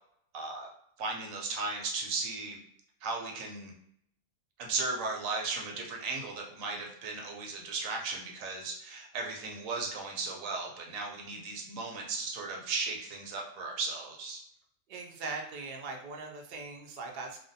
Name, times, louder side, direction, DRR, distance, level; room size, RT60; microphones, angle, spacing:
voice 1, 0.3-0.7 1.0-2.6 3.0-3.7 4.6-14.4, right 3 dB, 85° right, 0 dB, 1.0 m, -36 dB
voice 2, 14.9-17.4, right 3 dB, 70° right, 1 dB, 0.4 m, -40 dB
2.5 x 2.1 x 2.6 m, 0.71 s
omnidirectional pair, 1.4 m